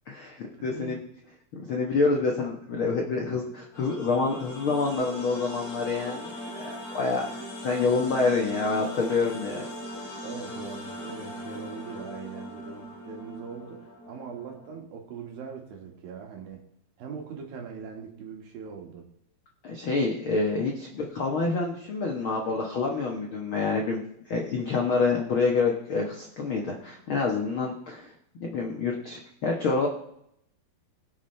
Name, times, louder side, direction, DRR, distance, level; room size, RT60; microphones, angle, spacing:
voice 1, 0.1-1.0 1.5-7.3 7.6-9.6 19.6-28.1 28.4-29.9, left 4 dB, 75° left, 0 dB, 1.2 m, -27 dB
voice 2, 0.6-1.0 10.2-16.6 17.0-19.1, right 6 dB, 70° right, 2 dB, 3.5 m, -41 dB
sound 1, 3.7-14.8, equal, 45° left, 4.2 m, -39 dB
22.0 x 7.3 x 3.3 m, 0.75 s
omnidirectional pair, 4.4 m